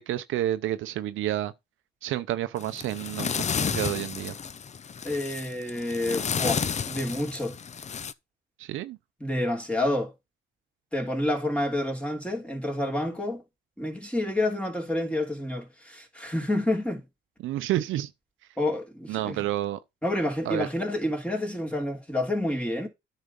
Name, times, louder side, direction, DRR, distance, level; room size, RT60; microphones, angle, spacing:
voice 1, 0.0-1.5 2.0-4.3 8.6-9.0 17.4-18.1 19.1-19.8 20.5-20.7, right 13 dB, 85° right, 0.7 m, -30 dB
sound 1, 2.6-8.1, left 6 dB, 35° left, 0.6 m, -32 dB
voice 2, 5.0-7.6 9.2-10.1 10.9-13.4 13.8-17.0 18.6-19.5 20.0-22.9, left 1 dB, 5° left, 3.0 m, -29 dB
9.6 x 4.2 x 5.4 m
cardioid pair, 90°, 20 cm